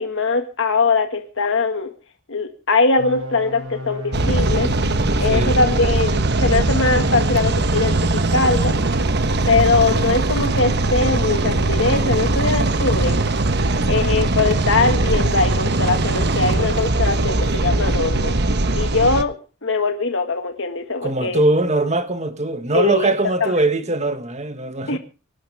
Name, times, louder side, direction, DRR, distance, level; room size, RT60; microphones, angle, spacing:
voice 1, 0.0-1.9 2.3-4.7 5.2-8.8 9.5-13.2 13.9-18.4 18.7-19.4 19.6-21.4 22.7-23.1 23.4-23.5 24.9-25.0, left 3 dB, 65° left, 1.8 m, -21 dB
sound 1, 3.0-8.0, left 2 dB, 85° right, 5.9 m, -32 dB
sound 2, 4.1-19.2, right 2 dB, 50° right, 1.1 m, -20 dB
voice 2, 5.2-5.6 13.7-14.1 21.0-25.0, right 2 dB, 35° right, 1.6 m, -21 dB
25.0 x 11.5 x 3.5 m
head